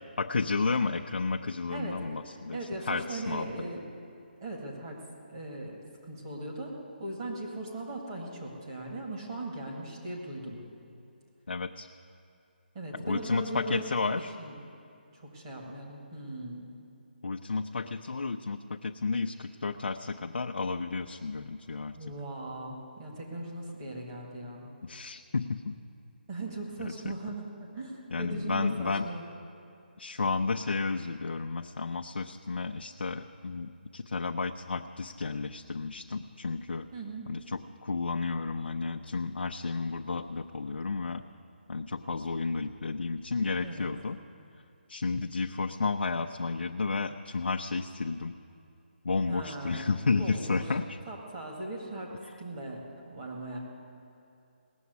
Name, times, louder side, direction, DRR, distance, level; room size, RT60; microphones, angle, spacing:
voice 1, 0.2-2.6 2.9-3.5 11.5-11.9 13.0-14.3 17.2-21.9 24.8-25.7 26.8-27.1 28.1-29.1 30.0-36.9 37.3-41.2 41.7-44.2 44.9-48.4 49.0-51.0, left 4 dB, 80° left, 3 dB, 0.6 m, -32 dB
voice 2, 1.7-3.9 4.4-5.0 5.3-6.7 7.0-10.7 12.7-14.6 15.1-16.7 21.9-24.7 26.3-29.3 36.9-37.4 43.6-43.9 49.3-50.7 51.1-53.6, right 2 dB, 25° right, -2 dB, 1.9 m, -39 dB
18.5 x 7.2 x 9.4 m, 2.7 s
hypercardioid pair, 170°, 6 cm